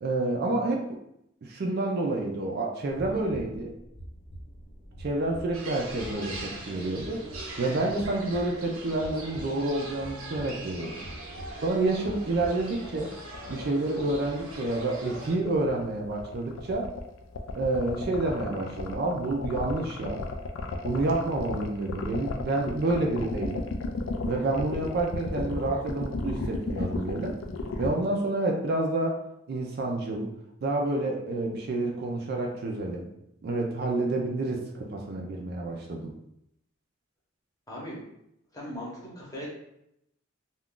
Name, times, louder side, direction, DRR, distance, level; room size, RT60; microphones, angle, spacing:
voice 1, 0.0-1.0 1.4-3.7 5.0-7.2 7.6-11.1 11.6-13.1 13.5-16.9 17.5-20.2 20.8-23.7 24.2-27.4 27.8-29.2 29.5-30.3 30.6-33.1 33.4-36.1, right 2 dB, 50° right, 1 dB, 0.4 m, -29 dB
sound 1, 2.9-12.5, equal, 85° left, 0.7 m, -45 dB
sound 2, 5.5-15.4, right 2 dB, 90° right, 0.7 m, -42 dB
sound 3, 12.1-27.9, left 3 dB, 65° left, 0.3 m, -34 dB
voice 2, 37.7-38.0 38.5-39.5, equal, 15° left, -5 dB, 0.8 m, -38 dB
2.3 x 2.3 x 3.6 m, 0.79 s
head